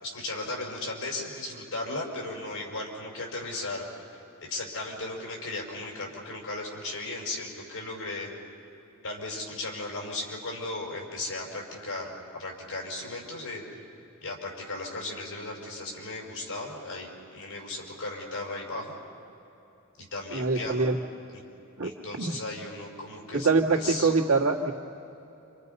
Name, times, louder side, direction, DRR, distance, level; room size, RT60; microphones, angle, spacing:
voice 1, 0.0-4.2 4.5-8.3 9.0-13.8 14.2-19.0 20.0-20.8 21.3-21.4 21.8-24.1, left 2 dB, 70° left, 0 dB, 5.8 m, -36 dB
voice 2, 20.3-21.0 21.8-21.9 22.2-22.3 23.3-24.7, right 4 dB, 75° right, 2 dB, 1.9 m, -24 dB
29.5 x 27.0 x 5.5 m, 2.9 s
head